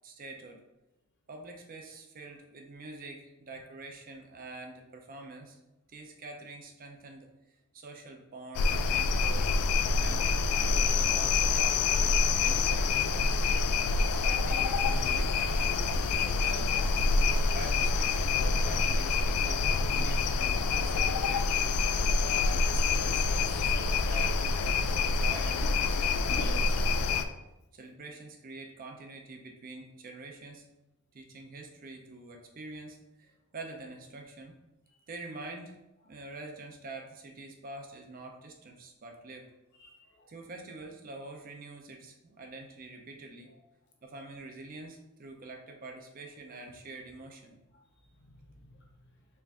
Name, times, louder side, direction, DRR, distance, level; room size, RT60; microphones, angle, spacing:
voice 1, 0.0-0.6 1.3-5.6 5.9-7.3 7.7-9.6 10.0-10.4 10.6-13.5 14.0-16.9 17.4-21.5 22.2-26.7 27.1-27.2 27.7-30.7 31.1-34.5 35.1-35.8 36.0-39.5 40.3-43.5 44.0-47.6, right 2 dB, 40° right, 2 dB, 0.5 m, -45 dB
sound 1, 8.5-27.2, left 4 dB, 75° left, 0.3 m, -27 dB
voice 2, 23.4-24.0 25.6-25.7 26.3-26.6 39.7-40.3 43.5-43.6 48.2-48.9, left 1 dB, 50° left, 0 dB, 0.8 m, -47 dB
4.4 x 2.5 x 3.5 m, 0.95 s
head